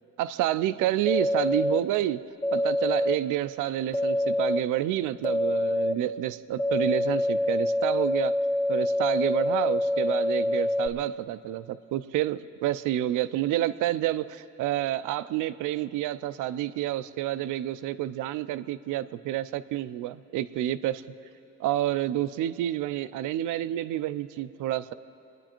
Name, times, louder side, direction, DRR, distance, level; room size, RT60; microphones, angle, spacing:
voice 1, 0.2-2.2 2.5-8.4 8.7-21.0 21.6-24.9, right 13 dB, 90° right, 13 dB, 0.5 m, -29 dB
sound 1, 1.1-1.8 2.4-3.2 3.9-4.6 5.2-5.9 6.6-10.9, left 1 dB, 25° left, 1.5 m, -26 dB
25.5 x 9.9 x 4.4 m, 2.7 s
cardioid pair, 90°, 30 cm